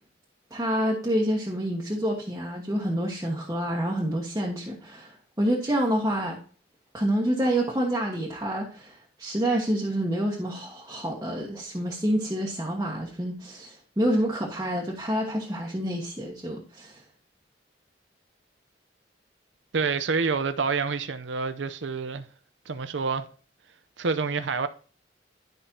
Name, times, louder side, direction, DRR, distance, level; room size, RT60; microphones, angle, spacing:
voice 1, 0.5-6.4 6.9-17.0, right 1 dB, 20° right, 1.3 m, -28 dB
voice 2, 19.7-22.3 22.7-23.3 24.0-24.7, right 4 dB, 90° right, 0.7 m, -27 dB
12.0 x 5.2 x 2.8 m
head